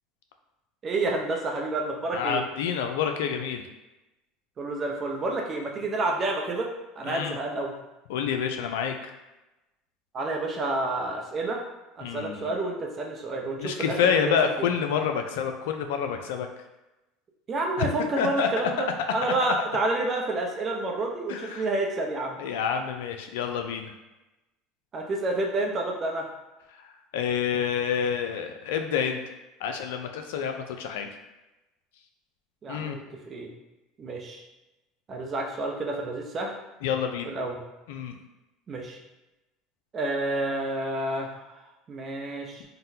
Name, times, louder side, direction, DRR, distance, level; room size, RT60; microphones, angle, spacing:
voice 1, 0.8-2.4 4.6-6.7 7.0-7.7 10.1-11.6 12.0-14.3 17.5-18.9 19.1-22.4 24.9-26.3 32.6-33.5 34.0-34.4 35.1-36.5 37.3-37.6 38.7-39.0 39.9-41.4 41.9-42.6, right 2 dB, 35° right, 1 dB, 0.7 m, -29 dB
voice 2, 2.1-3.6 7.1-7.4 8.1-9.1 12.0-12.5 13.6-16.5 17.8-18.7 19.2-19.5 21.3-21.7 22.4-23.9 27.1-29.2 29.6-31.1 32.7-33.0 36.8-37.3 37.9-38.2, left 7 dB, 75° left, 5 dB, 0.3 m, -28 dB
3.9 x 2.1 x 2.7 m, 1.0 s
hypercardioid pair, 80°, 0 cm